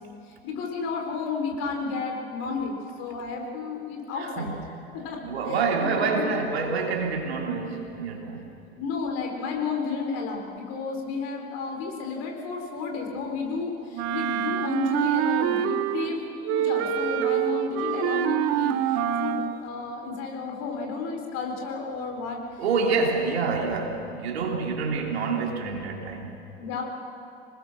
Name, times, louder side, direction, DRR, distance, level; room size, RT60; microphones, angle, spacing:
voice 1, 0.0-4.6 4.9-5.2 5.5-6.4 8.8-22.4 22.9-23.0 26.6-26.8, left 4 dB, 50° left, 2 dB, 4.3 m, -32 dB
voice 2, 4.2-4.5 5.2-8.5 22.6-26.4, right 4 dB, 70° right, 1 dB, 3.2 m, -27 dB
Wind instrument woodwind instrument, 13.9-16.2 16.4-19.6, right 10 dB, 50° right, 1.1 m, -26 dB
26.0 x 20.0 x 6.2 m, 2.7 s
figure-of-eight pair, 70°, 33 cm